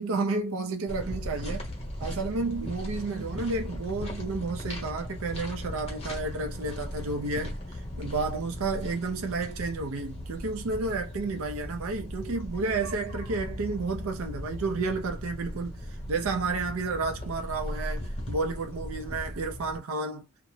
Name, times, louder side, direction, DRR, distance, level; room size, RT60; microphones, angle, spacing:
voice 1, 0.0-1.7 2.0-20.3, right 3 dB, 75° right, 0.5 m, -31 dB
sound 1, 0.9-19.8, left 1 dB, 30° left, 0.8 m, -38 dB
2.5 x 2.0 x 3.0 m
head